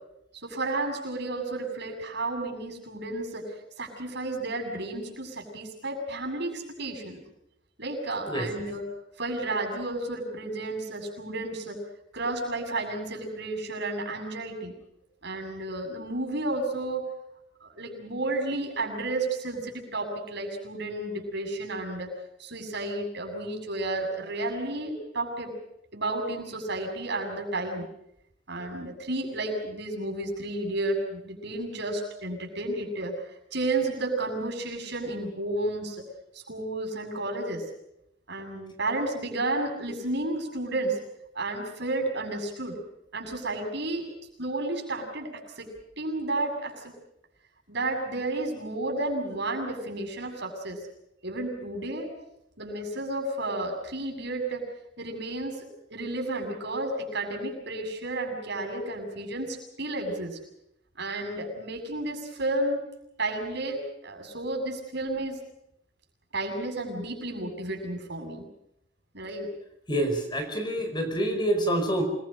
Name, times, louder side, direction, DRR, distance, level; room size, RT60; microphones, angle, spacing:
voice 1, 0.3-7.2 7.8-8.8 9.2-11.8 12.1-14.8 15.2-17.1 17.6-22.1 22.4-25.5 25.9-27.9 28.5-33.1 33.5-36.0 36.3-37.6 38.3-41.0 41.4-42.8 43.1-44.1 44.4-45.7 46.0-46.7 47.7-50.8 51.2-52.1 52.6-54.7 55.0-60.4 61.0-62.8 63.2-65.4 66.3-68.4 69.1-69.5, right 2 dB, 60° right, 3 dB, 7.4 m, -32 dB
voice 2, 69.9-72.0, right 1 dB, 25° left, 6 dB, 5.3 m, -27 dB
28.0 x 22.0 x 6.6 m, 0.80 s
head